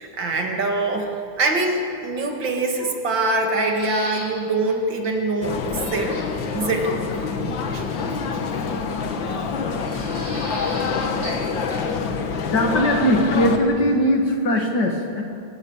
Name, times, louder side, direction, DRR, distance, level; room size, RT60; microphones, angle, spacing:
voice 1, 0.0-6.2 6.5-6.9 7.2-7.9 8.3-8.4, right 2 dB, 80° right, 2 dB, 2.8 m, -24 dB
sound 1, 3.4-4.3 4.7-4.8 5.0-5.1 6.1-6.5 7.8-8.4 9.8-11.4 11.7-11.8, right 1 dB, 30° right, 6.9 m, -37 dB
sound 2, 5.4-13.6, left 5 dB, 90° left, 2.0 m, -26 dB
voice 2, 12.5-15.2, equal, 65° left, 2 dB, 2.6 m, -20 dB
24.0 x 14.5 x 7.3 m, 2.5 s
omnidirectional pair, 2.0 m